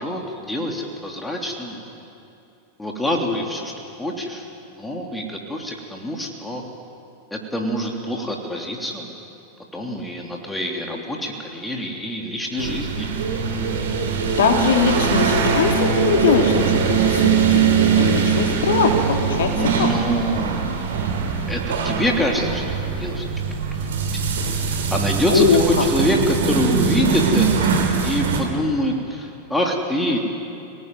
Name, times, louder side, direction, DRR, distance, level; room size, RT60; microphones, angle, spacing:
voice 1, 0.0-2.1 2.8-6.6 7.3-9.2 9.7-13.1 19.5-20.7 21.5-23.3 23.8-23.9 24.7-30.2, equal, 5° left, 1 dB, 3.1 m, -25 dB
sound 1, 12.6-28.4, right 6 dB, 60° right, 3.3 m, -21 dB
voice 2, 14.3-19.9 25.3-25.8, left 5 dB, 60° left, 4 dB, 2.4 m, -21 dB
26.0 x 18.0 x 9.3 m, 2.6 s
figure-of-eight pair, 90°, 0 cm